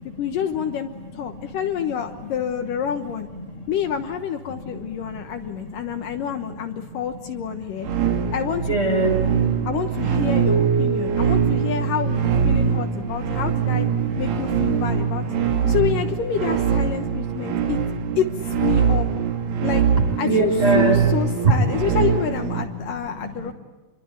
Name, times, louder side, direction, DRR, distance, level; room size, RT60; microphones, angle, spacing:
voice 1, 0.2-3.3 3.7-7.9 8.3-9.1 9.6-13.9 14.2-15.2 15.7-17.8 18.2-19.1 19.6-19.8 20.2-23.5, left 8 dB, 70° left, 5 dB, 2.7 m, -28 dB
voice 2, 4.6-5.1 5.4-6.0 7.8-8.3 8.7-9.7 13.0-13.3 14.1-14.2 20.2-21.0 21.4-21.5 23.0-23.5, right 3 dB, 20° right, 4 dB, 4.0 m, -24 dB
sound 1, 7.8-22.7, right 7 dB, 70° right, 3.3 m, -22 dB
sound 2, 10.5-13.0, right 4 dB, 85° left, 0.6 m, -29 dB
28.0 x 23.0 x 8.9 m, 1.2 s
omnidirectional pair, 4.3 m